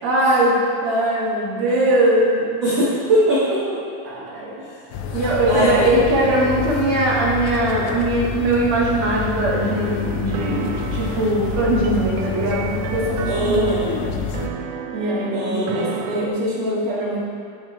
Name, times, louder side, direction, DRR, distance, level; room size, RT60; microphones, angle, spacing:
voice 1, 0.0-2.5 4.0-4.5 5.1-14.2 14.9-17.2, right 1 dB, 45° right, -7 dB, 2.1 m, -21 dB
voice 2, 2.6-3.8 4.6-4.7 5.5-5.9 13.2-13.9 15.3-16.0, right 1 dB, 60° right, -10 dB, 1.2 m, -21 dB
sound 1, 4.9-14.5, left 5 dB, 80° left, 2.2 m, -28 dB
sound 2, 9.6-16.3, right 7 dB, 85° right, 1.9 m, -33 dB
10.5 x 7.8 x 3.2 m, 2.3 s
omnidirectional pair, 4.4 m